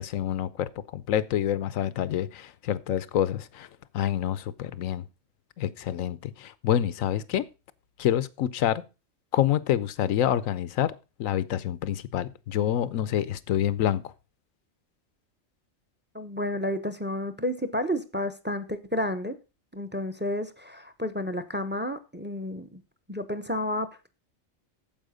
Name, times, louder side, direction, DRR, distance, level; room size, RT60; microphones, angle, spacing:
voice 1, 0.0-3.7 3.9-5.0 5.6-7.5 8.0-8.8 9.3-10.9 11.2-14.1, left 11 dB, 85° left, 1.1 m, -27 dB
voice 2, 16.1-19.4 19.7-22.8 23.1-24.1, left 1 dB, 10° right, 0.6 m, -31 dB
9.0 x 7.5 x 5.0 m
omnidirectional pair, 1.3 m